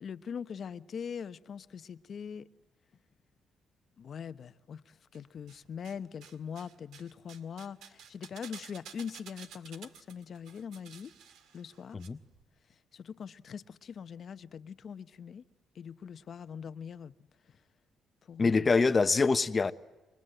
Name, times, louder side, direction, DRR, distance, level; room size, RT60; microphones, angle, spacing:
voice 1, 0.0-2.5 4.0-11.1 11.5-12.0 12.9-15.4 15.7-17.1 18.3-18.6, left 7 dB, 55° left, 1.0 m, -42 dB
sound 1, 5.1-6.0 6.2-12.1 12.3-12.4, right 7 dB, 80° right, 2.0 m, -52 dB
voice 2, 18.4-19.7, left 4 dB, 30° left, 1.1 m, -25 dB
30.0 x 24.0 x 7.9 m
cardioid pair, 90°, 0 cm